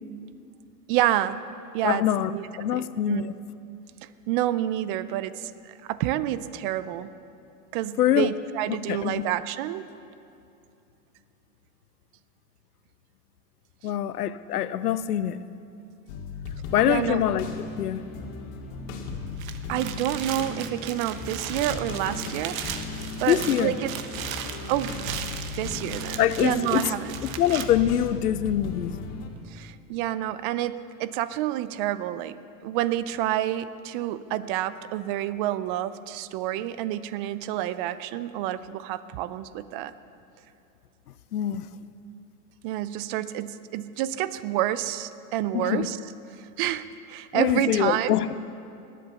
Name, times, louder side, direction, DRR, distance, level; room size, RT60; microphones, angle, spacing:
voice 1, 0.9-1.4 1.7-2.0 2.3-3.3 4.3-7.1 7.7-9.9 16.9-17.2 19.7-22.6 23.2-23.9 24.7-25.2 25.6-27.2 29.5-32.4 32.6-39.9 42.6-46.0 46.4-48.1, right 13 dB, 35° right, 0.5 m, -28 dB
voice 2, 1.8-2.3 2.6-3.3 8.0-8.3 8.9-9.2 13.8-15.4 16.7-17.5 17.8-18.1 23.3-23.7 26.2-26.9 27.2-28.9 41.3-41.7 45.5-45.9 47.3-48.3, left 11 dB, 85° left, 0.7 m, -24 dB
sound 1, 16.1-29.3, left 4 dB, 50° left, 2.3 m, -37 dB
sound 2, 19.3-27.6, right 9 dB, 65° right, 1.3 m, -37 dB
20.0 x 8.5 x 7.0 m
hypercardioid pair, 120°, 45 cm